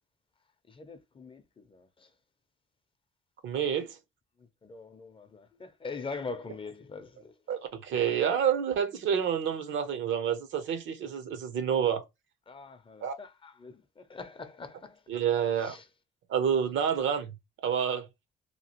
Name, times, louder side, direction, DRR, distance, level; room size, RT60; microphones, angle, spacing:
voice 1, 0.7-2.1 4.4-7.3 12.5-15.0 15.6-15.9, left 4 dB, 25° left, 0.5 m, -43 dB
voice 2, 3.4-4.0 7.5-12.0 13.0-13.1 15.1-15.8 16.3-17.3 17.6-18.1, right 8 dB, 75° right, 0.6 m, -28 dB
2.9 x 2.3 x 2.9 m
cardioid pair, 90°, 20 cm